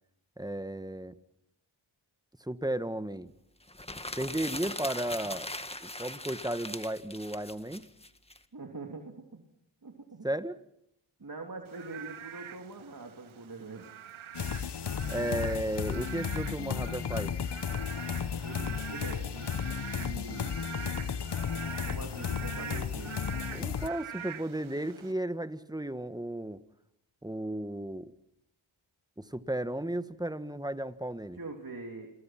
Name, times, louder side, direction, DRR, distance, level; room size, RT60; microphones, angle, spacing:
voice 1, 0.4-1.1 2.4-3.3 4.2-5.5 5.8-7.8 10.2-10.6 15.1-17.3 23.5-26.6 27.2-28.1 29.2-31.4, right 1 dB, 10° right, 12 dB, 1.5 m, -34 dB
sound 1, 3.7-8.4, left 1 dB, 10° left, 1.9 m, -40 dB
voice 2, 8.5-9.4 9.8-10.3 11.2-14.0 18.4-19.5 19.9-20.6 21.7-23.2 31.4-32.1, right 3 dB, 45° right, 2 dB, 3.2 m, -43 dB
Frog / Rain, 11.7-25.1, right 9 dB, 70° right, 1.1 m, -45 dB
sound 2, 14.3-23.9, left 7 dB, 55° left, 1.2 m, -34 dB
28.5 x 23.0 x 6.0 m, 0.78 s
cardioid pair, 45°, 50 cm